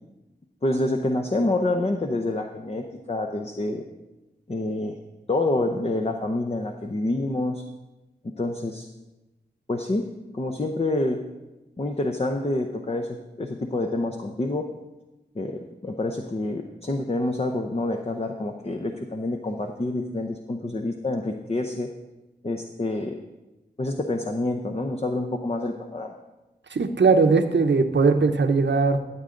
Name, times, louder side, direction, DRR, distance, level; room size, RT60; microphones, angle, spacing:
voice 1, 0.6-3.8 4.5-4.9 5.3-7.6 8.2-8.9 9.7-10.1 10.3-11.2 11.8-14.7 15.3-21.9 22.4-23.2 23.8-26.1, left 2 dB, 35° left, 4 dB, 0.7 m, -27 dB
voice 2, 26.7-29.0, right 4 dB, 80° right, 7 dB, 0.8 m, -19 dB
13.5 x 7.8 x 3.8 m, 1.1 s
wide cardioid pair, 55°, 18 cm